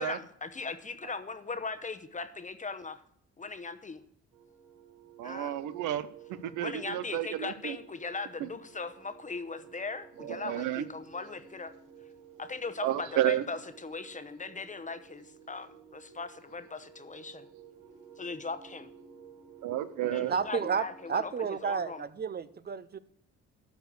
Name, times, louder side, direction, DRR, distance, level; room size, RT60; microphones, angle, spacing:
voice 1, 0.0-2.9 3.4-4.0 5.2-5.6 6.6-11.7 12.4-17.5 18.2-18.9 20.0-22.0, left 4 dB, 25° left, 10 dB, 0.9 m, -39 dB
sound 1, 4.3-21.2, right 7 dB, 70° right, 4.3 m, -54 dB
voice 2, 5.2-7.8 8.4-8.5 10.2-10.8 12.8-13.4 19.6-20.3, right 13 dB, 85° right, 14 dB, 0.7 m, -31 dB
voice 3, 20.3-23.0, right 6 dB, 35° right, 15 dB, 0.6 m, -32 dB
12.5 x 4.7 x 6.7 m, 0.66 s
cardioid pair, 90°, 30 cm